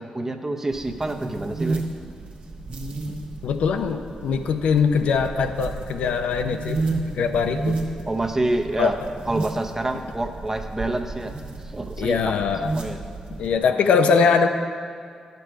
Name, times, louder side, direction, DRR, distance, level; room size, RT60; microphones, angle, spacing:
voice 1, 0.0-1.8 8.1-9.0 9.3-11.3 11.6-12.2 12.7-13.0 13.6-13.8, right 2 dB, 20° right, 5 dB, 0.7 m, -27 dB
sound 1, 0.7-13.6, right 3 dB, 65° right, 1.3 m, -32 dB
voice 2, 3.4-7.8 8.8-8.9 12.0-12.7 13.4-14.5, left 5 dB, 85° left, 7 dB, 0.6 m, -22 dB
11.0 x 6.9 x 4.6 m, 2.2 s
cardioid pair, 95°, 2 cm